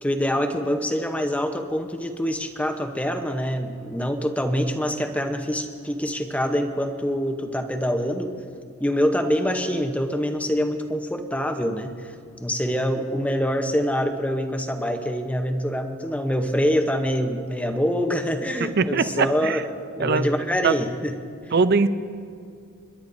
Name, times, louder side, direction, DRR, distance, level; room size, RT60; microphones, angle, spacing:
voice 1, 0.0-8.3 8.8-11.9 12.4-19.6 20.0-21.1 21.4-21.5, equal, 5° left, 5 dB, 0.7 m, -25 dB
voice 2, 18.6-19.6 20.0-20.3 20.6-20.8 21.5-21.9, right 4 dB, 45° right, 12 dB, 0.5 m, -21 dB
29.5 x 11.5 x 2.6 m, 2.4 s
head